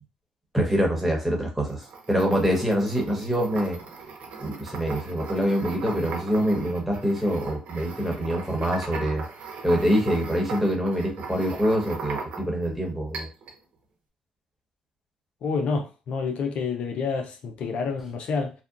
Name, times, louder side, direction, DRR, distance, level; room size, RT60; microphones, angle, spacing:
voice 1, 0.5-3.8 4.4-9.2 9.6-13.3, equal, 5° right, 1.1 m, -25 dB
sound 1, 1.7-12.7 13.1-13.6, right 4 dB, 70° right, 0.7 m, -38 dB
voice 2, 15.4-18.5, left 5 dB, 65° left, 0.4 m, -28 dB
2.7 x 2.2 x 2.4 m
supercardioid pair, 65°, 2 cm